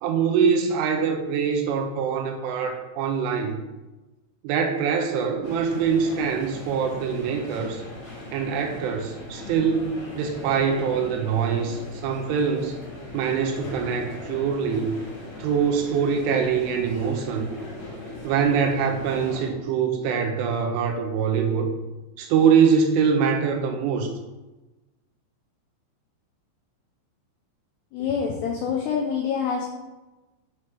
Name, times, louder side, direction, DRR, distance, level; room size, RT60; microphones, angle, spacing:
voice 1, 0.0-3.6 4.4-7.8 8.3-12.8 13.1-15.0 15.4-17.5 18.2-21.7 22.2-24.1, right 6 dB, 80° right, 4 dB, 3.1 m, -24 dB
sound 1, 5.4-19.5, left 2 dB, 60° left, 2.7 m, -39 dB
voice 2, 27.9-29.6, left 6 dB, 85° left, -1 dB, 2.4 m, -26 dB
7.1 x 5.9 x 4.9 m, 1.1 s
omnidirectional pair, 5.9 m